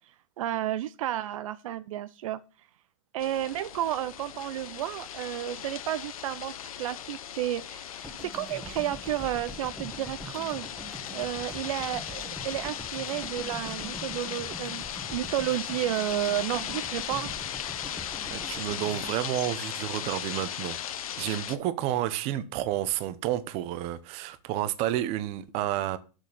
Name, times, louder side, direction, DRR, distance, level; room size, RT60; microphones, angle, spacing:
voice 1, 0.4-2.4 3.1-10.7 11.1-14.8 15.1-17.4, right 13 dB, 70° right, 0.6 m, -32 dB
sound 1, 3.2-21.6, left 10 dB, 90° left, 0.9 m, -37 dB
sound 2, 8.0-20.2, right 1 dB, ahead, 1.6 m, -44 dB
voice 2, 18.3-20.8 21.2-26.0, right 13 dB, 35° right, 0.8 m, -30 dB
6.4 x 6.4 x 7.1 m
supercardioid pair, 150°, 18 cm